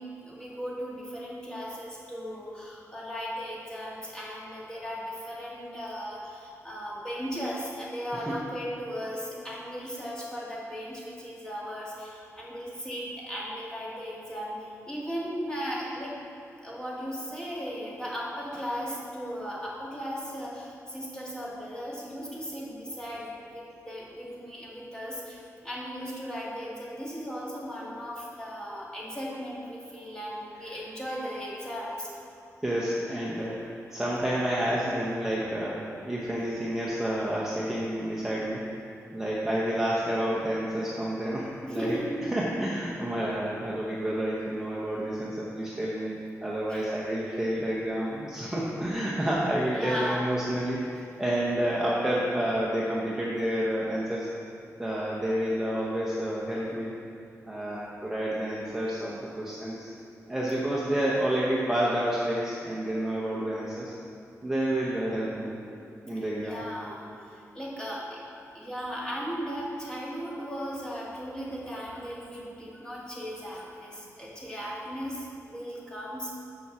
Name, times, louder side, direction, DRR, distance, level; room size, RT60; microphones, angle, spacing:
voice 1, 0.0-16.2 16.6-32.2 41.6-42.3 46.7-46.9 49.7-50.3 66.2-76.4, equal, 15° left, -6 dB, 1.8 m, -37 dB
voice 2, 32.6-38.6 39.1-50.8 51.2-54.3 54.8-56.9 57.5-59.9 60.3-63.9 64.4-65.6 66.0-66.7, right 1 dB, 5° right, -6 dB, 0.8 m, -29 dB
6.9 x 5.9 x 7.0 m, 2.7 s
wide cardioid pair, 170°, 6 cm